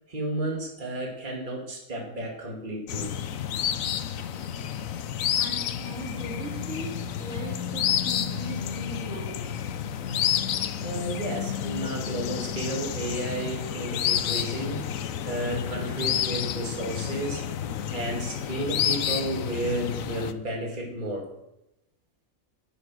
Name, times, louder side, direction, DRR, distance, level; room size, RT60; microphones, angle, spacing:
voice 1, 0.1-3.1 10.8-14.8 15.2-17.4 17.9-21.3, right 1 dB, 35° right, 2.5 m, -32 dB
sound 1, 2.9-20.3, left 9 dB, 80° left, 1.1 m, -30 dB
voice 2, 5.4-9.8, right 1 dB, 65° right, 2.8 m, -39 dB
9.7 x 9.6 x 6.3 m
omnidirectional pair, 1.4 m